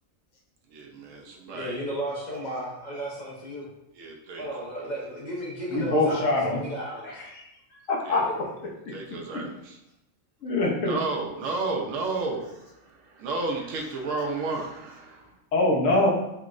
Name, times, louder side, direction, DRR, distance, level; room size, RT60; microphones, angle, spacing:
voice 1, 0.7-1.8 3.9-4.4 4.8-4.9 8.0-8.3 8.9-9.8 10.8-15.3, right 3 dB, 80° right, 0 dB, 1.0 m, -32 dB
voice 2, 1.5-3.7 4.4-7.2 8.1-8.4, equal, 50° left, -4 dB, 0.5 m, -34 dB
voice 3, 5.7-6.6 7.0-7.5 7.9-8.7 10.4-11.0 15.5-16.1, left 2 dB, 80° left, -2 dB, 1.1 m, -24 dB
4.4 x 2.0 x 2.4 m, 0.86 s
omnidirectional pair, 1.4 m